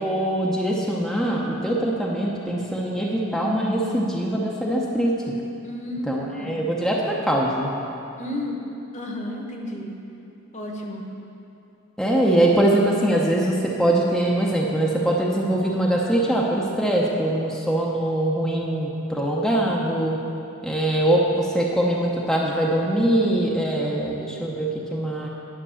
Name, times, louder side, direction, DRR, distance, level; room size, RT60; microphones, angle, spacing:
voice 1, 0.0-5.2 6.1-7.7 12.0-20.2 20.6-25.3, right 1 dB, ahead, -4 dB, 0.8 m, -22 dB
voice 2, 5.6-6.6 8.2-8.6 8.9-10.0 10.5-11.1, left 1 dB, 35° left, 1 dB, 1.2 m, -32 dB
10.0 x 6.0 x 7.0 m, 2.8 s
head